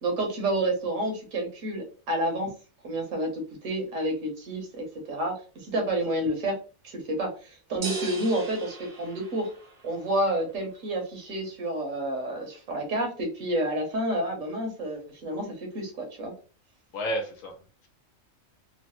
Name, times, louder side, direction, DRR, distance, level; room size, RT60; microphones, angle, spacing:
voice 1, 0.0-2.5 2.8-6.6 6.8-9.5 9.8-16.3, right 1 dB, 70° right, 2 dB, 1.2 m, -29 dB
sound 1, 7.8-9.9, right 3 dB, 45° right, 0.5 m, -36 dB
voice 2, 16.9-17.9, equal, 70° left, 3 dB, 1.1 m, -32 dB
3.0 x 2.1 x 2.9 m, 0.37 s
omnidirectional pair, 1.4 m